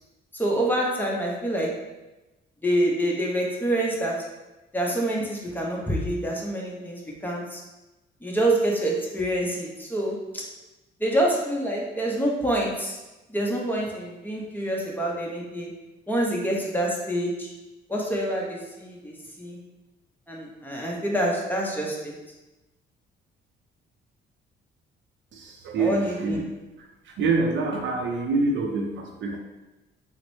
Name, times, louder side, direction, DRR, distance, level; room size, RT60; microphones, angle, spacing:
voice 1, 0.3-1.7 2.6-4.1 4.7-7.6 8.2-10.4 11.0-13.0 13.3-15.7 16.1-17.5 17.9-19.6 20.3-22.1 25.8-26.4, right 1 dB, 10° left, -2 dB, 0.8 m, -26 dB
voice 2, 25.3-26.4 27.0-29.4, right 3 dB, 70° right, 1 dB, 0.6 m, -26 dB
3.9 x 2.1 x 3.1 m, 1.1 s
cardioid pair, 90°, 20 cm